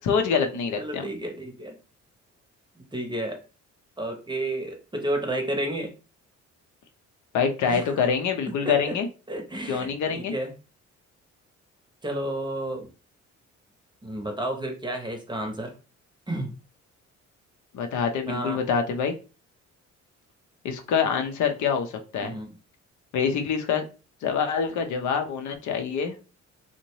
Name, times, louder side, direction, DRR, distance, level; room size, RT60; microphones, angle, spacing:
voice 1, 0.0-1.0 7.3-9.1 9.7-10.3 17.7-19.2 20.6-22.4 23.1-23.8 24.2-26.1, left 6 dB, 75° left, 5 dB, 0.6 m, -25 dB
voice 2, 0.7-1.8 2.8-3.4 4.0-5.9 7.7-7.9 8.5-9.0 9.3-10.5 12.0-12.9 14.0-15.8 16.3-16.5 18.3-18.6 22.2-22.5, right 1 dB, 15° right, 4 dB, 0.7 m, -31 dB
2.7 x 2.1 x 3.0 m, 0.33 s
cardioid pair, 90°, 30 cm